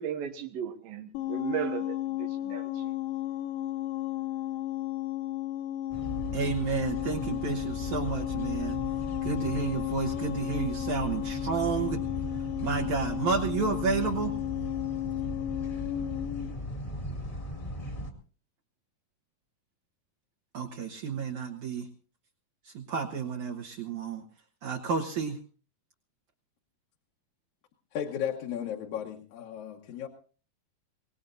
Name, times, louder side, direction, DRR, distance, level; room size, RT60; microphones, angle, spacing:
voice 1, 0.0-2.9, right 9 dB, 85° right, 6 dB, 3.0 m, -36 dB
sound 1, 1.1-16.5, left 13 dB, 85° left, 2.6 m, -34 dB
sound 2, 5.9-18.1, left 1 dB, 20° left, 1.4 m, -38 dB
voice 2, 6.3-8.8 9.2-12.0 12.6-14.3 20.5-21.9 22.6-24.2 24.6-25.4, right 5 dB, 65° right, -1 dB, 2.4 m, -31 dB
voice 3, 27.9-30.1, left 9 dB, 65° left, 0 dB, 2.3 m, -35 dB
23.5 x 19.0 x 2.6 m, 0.38 s
omnidirectional pair, 4.0 m